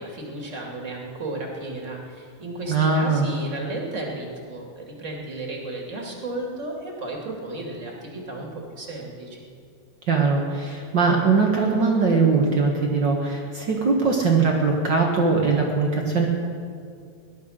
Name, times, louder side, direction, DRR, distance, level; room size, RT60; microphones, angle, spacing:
voice 1, 0.0-9.5, right 2 dB, 25° right, -1 dB, 2.2 m, -34 dB
voice 2, 2.7-3.3 10.1-16.3, right 4 dB, 50° right, 0 dB, 1.3 m, -21 dB
19.0 x 12.0 x 6.5 m, 2.3 s
omnidirectional pair, 4.1 m